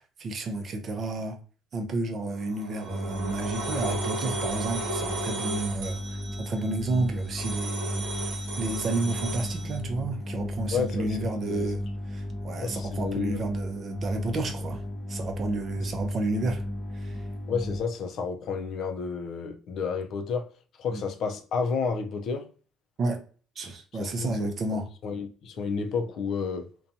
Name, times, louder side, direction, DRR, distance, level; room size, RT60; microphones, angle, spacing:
voice 1, 0.0-1.4 1.7-8.1 8.6-11.8 12.1-14.8 15.1-16.6 16.9-17.3 20.9-21.0 23.0-23.2 23.6-24.9, right 2 dB, 45° right, 0.5 m, -31 dB
sound 1, 2.3-9.8, right 2 dB, 85° right, 0.6 m, -35 dB
sound 2, 2.8-17.8, left 1 dB, 10° left, 0.6 m, -35 dB
voice 2, 10.7-11.7 12.6-13.4 17.5-20.5 20.8-22.5 23.9-26.7, left 5 dB, 60° left, 0.4 m, -31 dB
2.6 x 2.2 x 2.6 m
cardioid pair, 105°, 0 cm